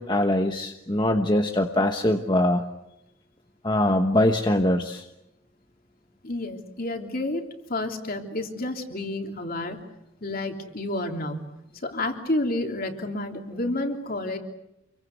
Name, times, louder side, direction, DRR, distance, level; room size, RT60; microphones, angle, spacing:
voice 1, 0.0-2.6 3.6-5.0, left 1 dB, 20° left, 4 dB, 1.1 m, -22 dB
voice 2, 6.2-9.8 10.2-11.5 11.8-14.4, left 1 dB, 40° left, 4 dB, 3.2 m, -30 dB
28.5 x 23.5 x 8.0 m, 0.88 s
head